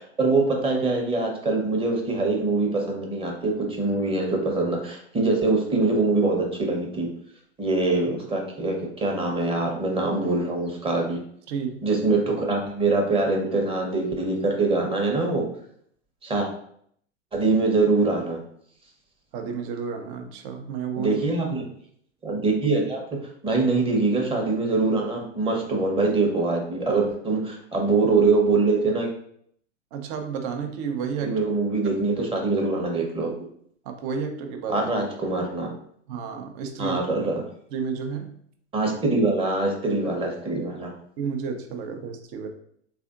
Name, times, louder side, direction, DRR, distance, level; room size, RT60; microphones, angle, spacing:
voice 1, 0.0-7.1 7.6-11.2 11.8-15.5 16.2-16.5 17.3-18.4 21.0-21.6 22.2-23.0 23.4-29.1 31.2-33.3 34.7-35.7 36.8-37.4 38.7-40.9, right 3 dB, 15° right, 0 dB, 0.9 m, -23 dB
voice 2, 11.5-11.8 19.3-21.2 22.3-22.4 29.9-31.4 31.8-31.9 33.8-34.8 36.1-37.0 37.7-38.4 41.2-42.5, right 6 dB, 45° right, 5 dB, 0.7 m, -31 dB
3.6 x 3.3 x 2.5 m, 0.64 s
hypercardioid pair, 105°, 36 cm